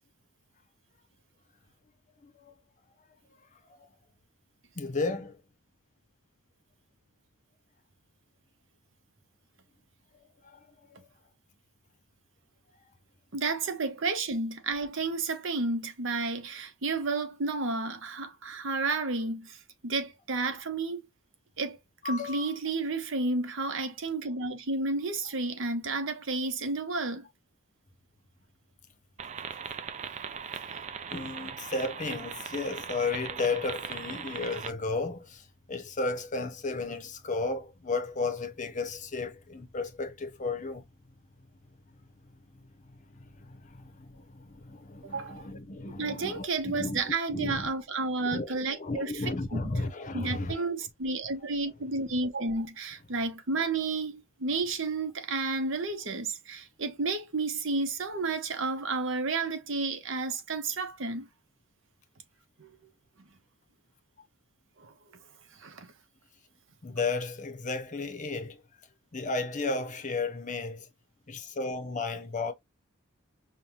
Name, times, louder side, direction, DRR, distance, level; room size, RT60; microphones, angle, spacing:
voice 1, 2.2-2.5 4.8-5.4 10.4-10.6 22.0-22.6 31.1-40.8 42.5-42.6 42.9-47.7 48.2-50.7 66.8-68.6 69.1-70.9 71.3-72.5, left 3 dB, 35° left, 0.7 m, -34 dB
voice 2, 13.3-21.0 21.6-21.8 22.0-27.3 45.0-45.5 46.0-49.1 49.5-49.8 50.1-61.3 62.6-62.7 64.8-64.9 65.5-65.9, right 3 dB, 60° right, 0.8 m, -31 dB
sound 1, 29.2-34.7, right 7 dB, 35° right, 0.3 m, -39 dB
5.4 x 2.2 x 2.9 m
head